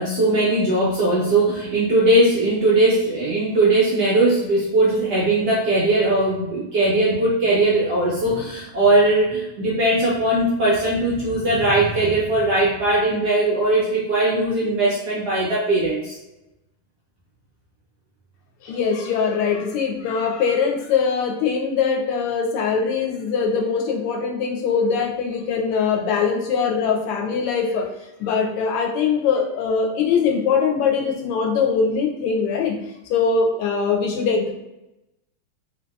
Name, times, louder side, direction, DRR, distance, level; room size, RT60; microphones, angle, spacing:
voice 1, 0.0-16.2, right 2 dB, 70° right, -6 dB, 1.0 m, -19 dB
voice 2, 18.6-27.9 28.2-32.7 33.1-34.5, left 5 dB, 85° left, 1 dB, 1.5 m, -22 dB
3.4 x 2.7 x 2.3 m, 0.95 s
omnidirectional pair, 2.4 m